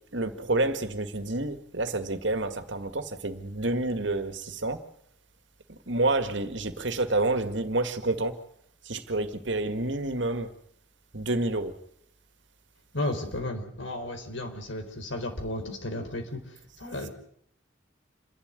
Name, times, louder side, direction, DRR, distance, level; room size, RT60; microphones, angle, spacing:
voice 1, 0.1-4.8 5.9-8.4 8.9-10.5 11.1-11.7, right 2 dB, 70° right, 10 dB, 1.9 m, -28 dB
voice 2, 12.9-16.4 16.8-17.1, left 1 dB, 75° left, 5 dB, 4.2 m, -33 dB
28.0 x 11.5 x 9.7 m, 0.70 s
head